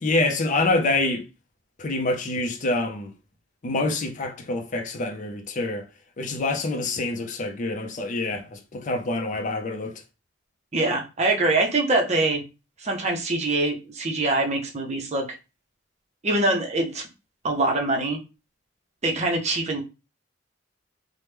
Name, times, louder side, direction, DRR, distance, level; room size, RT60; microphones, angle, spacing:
voice 1, 0.0-1.2 1.8-3.1 3.6-5.8 6.2-10.0, left 2 dB, 40° left, 0.5 m, -26 dB
voice 2, 10.7-12.4 12.8-15.4 16.2-17.0 17.4-18.2 19.0-19.8, right 2 dB, 35° right, 0.6 m, -24 dB
3.0 x 2.1 x 3.3 m
head